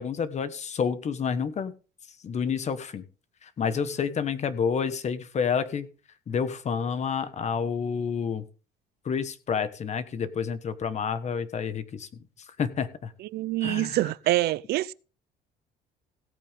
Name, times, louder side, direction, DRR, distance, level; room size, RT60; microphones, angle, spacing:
voice 1, 0.0-1.7 2.2-3.0 3.4-5.9 6.3-8.4 9.0-12.1 12.6-13.1 13.6-14.0, left 6 dB, 40° left, 1.4 m, -29 dB
voice 2, 13.2-14.9, right 16 dB, 70° right, 0.5 m, -26 dB
16.5 x 8.7 x 3.6 m
cardioid pair, 110°, 17 cm